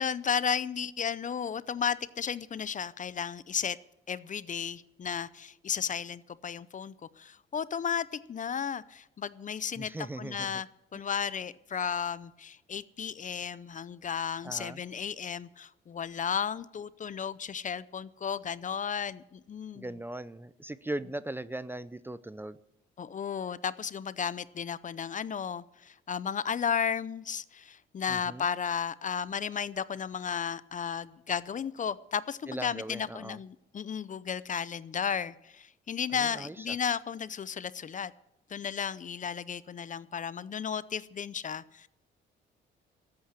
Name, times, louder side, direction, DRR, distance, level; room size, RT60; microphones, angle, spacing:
voice 1, 0.0-3.8 4.1-9.9 10.2-10.7 10.9-19.8 23.0-38.1 38.5-41.9, left 7 dB, 40° left, 17 dB, 0.6 m, -34 dB
voice 2, 9.8-10.6 10.9-11.0 14.4-14.8 19.7-22.6 28.1-28.5 32.5-33.4 36.1-36.8, right 1 dB, 10° right, 16 dB, 0.5 m, -39 dB
13.5 x 8.7 x 9.8 m, 0.86 s
cardioid pair, 90°, 20 cm